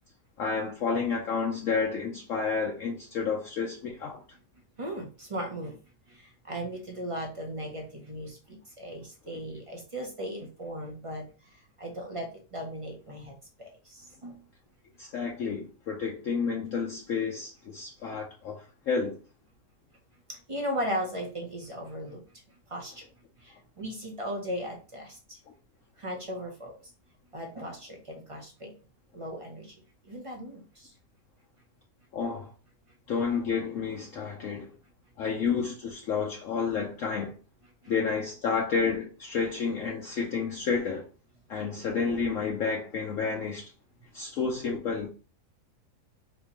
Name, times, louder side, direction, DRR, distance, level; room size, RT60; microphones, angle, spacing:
voice 1, 0.4-4.2 9.3-9.4 15.0-19.2 32.1-32.5 33.1-34.7 35.2-37.3 37.9-41.1 41.5-43.6 44.1-45.1, left 5 dB, 65° left, 0.9 m, -30 dB
voice 2, 4.8-5.8 6.1-11.3 11.8-13.3 13.6-14.4 20.3-22.2 22.7-23.1 23.4-25.4 26.0-26.8 27.3-28.7 29.1-29.7 30.0-30.9, equal, 40° right, 0.5 m, -37 dB
4.4 x 2.7 x 2.9 m
omnidirectional pair, 1.7 m